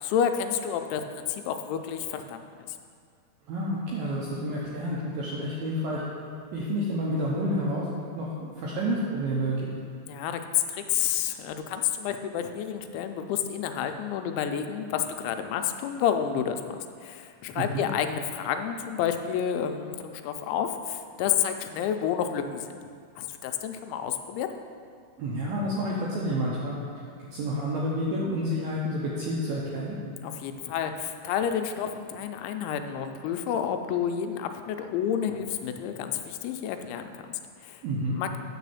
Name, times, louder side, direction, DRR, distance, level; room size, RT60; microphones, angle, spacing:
voice 1, 0.0-2.4 2.7-2.8 10.1-22.7 23.2-24.5 30.2-37.8 38.1-38.4, left 9 dB, 90° left, 7 dB, 2.9 m, -30 dB
voice 2, 3.5-6.0 6.5-7.8 8.1-9.7 17.6-17.9 25.2-26.8 27.3-30.0 37.8-38.2, equal, 80° right, -5 dB, 2.2 m, -29 dB
9.4 x 4.1 x 7.0 m, 2.2 s
omnidirectional pair, 5.2 m